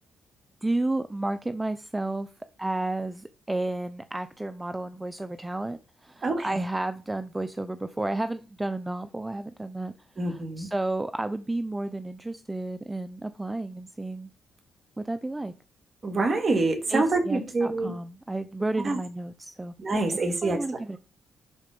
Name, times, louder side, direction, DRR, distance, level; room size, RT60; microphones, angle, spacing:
voice 1, 0.6-2.3 2.6-9.9 10.3-14.3 15.0-15.5 16.9-19.7 20.4-21.0, right 2 dB, 15° right, 0.6 m, -32 dB
voice 2, 6.2-6.6 10.2-10.7 16.0-17.9 18.8-19.0 19.8-20.6, right 3 dB, 40° right, 2.8 m, -26 dB
11.5 x 4.3 x 5.4 m
cardioid pair, 80°, 0 cm